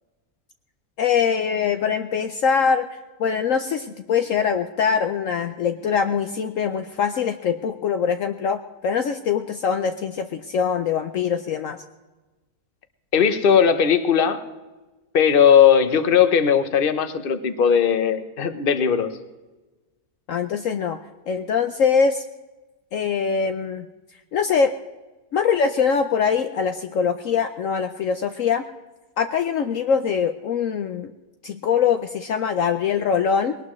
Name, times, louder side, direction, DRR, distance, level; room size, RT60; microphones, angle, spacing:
voice 1, 1.0-2.9 3.2-11.8 20.3-21.0 21.3-22.2 22.9-23.9 24.3-24.7 25.3-28.6 29.2-31.1 31.4-33.6, left 6 dB, 65° left, 7 dB, 1.0 m, -23 dB
voice 2, 13.1-14.4 15.1-19.1, left 7 dB, 40° left, 10 dB, 1.1 m, -18 dB
20.5 x 19.0 x 3.2 m, 1.2 s
omnidirectional pair, 1.6 m